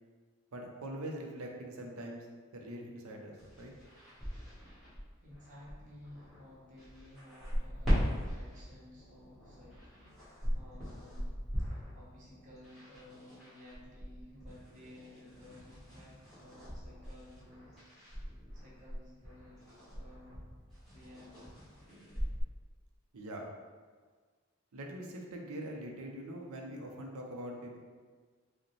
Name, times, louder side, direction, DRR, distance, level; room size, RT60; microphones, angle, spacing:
voice 1, 0.5-2.3 2.5-3.7 23.1-23.5 24.7-27.8, right 1 dB, 75° right, 1 dB, 0.6 m, -43 dB
sound 1, 3.4-22.4, equal, ahead, 1.3 m, -40 dB
voice 2, 5.2-11.3 11.6-17.9 18.5-20.5 20.9-21.5, left 1 dB, 35° right, -7 dB, 1.0 m, -55 dB
4.9 x 2.1 x 3.1 m, 1.5 s
head